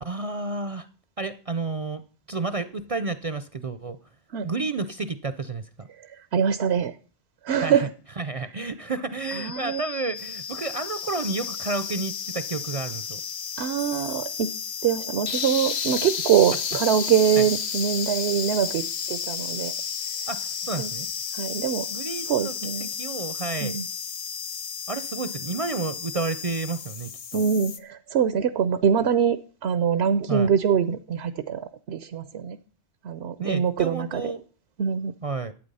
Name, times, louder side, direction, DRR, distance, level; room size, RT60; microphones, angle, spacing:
voice 1, 0.0-0.9 1.2-2.0 2.3-4.0 4.4-5.9 7.6-7.9 8.2-13.2 17.4-17.5 20.3-21.1 21.9-22.7 23.0-23.8 24.9-27.4 30.3-30.5 33.4-34.4 35.2-35.5, right 3 dB, 40° right, 13 dB, 0.6 m, -31 dB
voice 2, 6.0-6.9 7.4-7.9 9.3-9.8 13.6-14.5 14.8-19.7 20.8-20.9 21.3-21.9 22.3-22.9 23.6-23.9 27.3-32.6 33.0-34.3 34.8-35.1, right 8 dB, 85° right, 13 dB, 1.0 m, -24 dB
sound 1, 9.2-26.9, left 7 dB, 50° left, 1.3 m, -38 dB
sound 2, 10.2-27.8, left 7 dB, 75° left, 1.2 m, -33 dB
12.0 x 8.6 x 5.5 m, 0.41 s
omnidirectional pair, 1.1 m